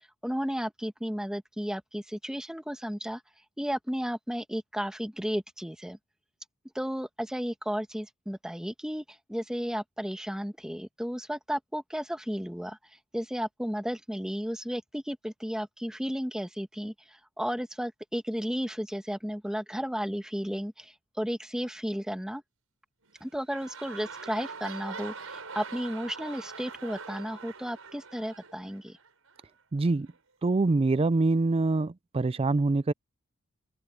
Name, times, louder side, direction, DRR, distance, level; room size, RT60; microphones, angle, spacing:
voice 1, 0.2-3.2 3.6-6.0 6.7-12.8 13.1-22.4 23.2-29.0, equal, 5° right, 1.2 m, -33 dB
sound 1, 23.0-29.4 30.1-30.2, right 5 dB, 80° right, 5.9 m, -43 dB
voice 2, 29.7-30.1 30.4-32.9, right 3 dB, 25° right, 0.4 m, -25 dB
open air
head